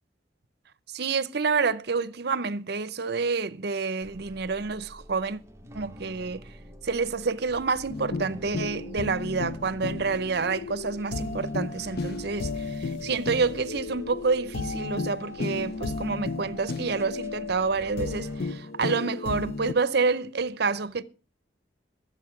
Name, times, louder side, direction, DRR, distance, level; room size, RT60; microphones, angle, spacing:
voice 1, 0.9-5.4 5.7-6.4 6.8-21.0, right 4 dB, 60° right, 0.7 m, -28 dB
sound 1, 4.0-18.5, equal, 15° right, 1.0 m, -49 dB
sound 2, 7.9-19.7, left 3 dB, 55° left, 0.5 m, -34 dB
sound 3, 11.7-13.9, left 1 dB, 85° left, 6.3 m, -49 dB
13.0 x 7.9 x 5.8 m
head